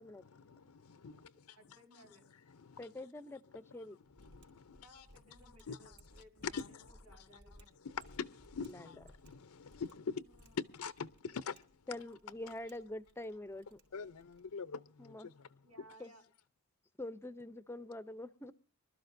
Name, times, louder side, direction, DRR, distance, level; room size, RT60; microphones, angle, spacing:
voice 1, 0.0-1.6 2.5-2.9 4.2-4.9 5.7-5.8 6.5-6.9 7.8-11.7 13.9-15.5, left 5 dB, 85° left, 0.6 m, -44 dB
voice 2, 1.6-2.3 4.8-7.7 10.1-10.6 15.6-16.2, equal, 90° right, 5.1 m, -61 dB
voice 3, 2.8-4.0 8.7-8.9 11.9-13.8 15.0-15.3 16.0-16.1 17.0-18.5, left 1 dB, 10° left, 0.5 m, -45 dB
Mechanisms, 4.1-14.6, right 1 dB, 50° right, 3.7 m, -63 dB
25.0 x 12.5 x 2.6 m
head